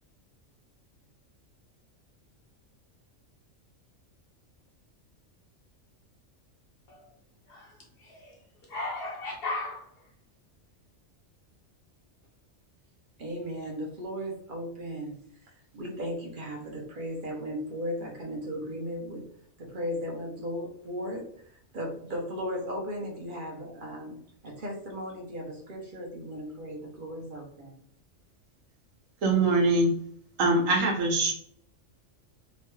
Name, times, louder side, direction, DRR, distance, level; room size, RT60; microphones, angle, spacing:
voice 1, 7.5-8.4 8.7-9.9, left 2 dB, 55° left, 0 dB, 0.9 m, -36 dB
voice 2, 13.2-19.2 19.6-24.2 24.4-27.8, equal, 45° right, -1 dB, 0.9 m, -36 dB
voice 3, 29.2-29.9 30.4-31.3, right 2 dB, 85° right, 0 dB, 1.2 m, -23 dB
3.0 x 2.2 x 3.1 m, 0.65 s
omnidirectional pair, 1.3 m